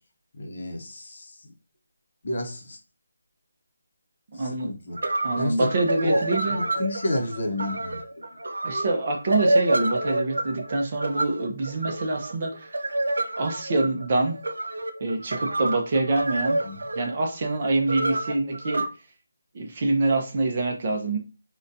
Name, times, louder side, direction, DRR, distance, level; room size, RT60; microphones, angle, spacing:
voice 1, 0.3-1.5 2.2-2.8 4.3-5.0 5.4-5.7 6.0-8.2 16.6-16.8, left 1 dB, 45° left, 2 dB, 0.7 m, -31 dB
voice 2, 4.3-4.7 5.2-6.6 8.6-12.8 13.4-14.4 15.0-16.6 16.9-18.8 19.5-21.2, right 2 dB, 30° right, 3 dB, 0.5 m, -25 dB
sound 1, 4.6-4.7 5.0-18.9, right 1 dB, 85° right, 0.5 m, -28 dB
3.8 x 2.2 x 2.6 m, 0.32 s
figure-of-eight pair, 175°, 0 cm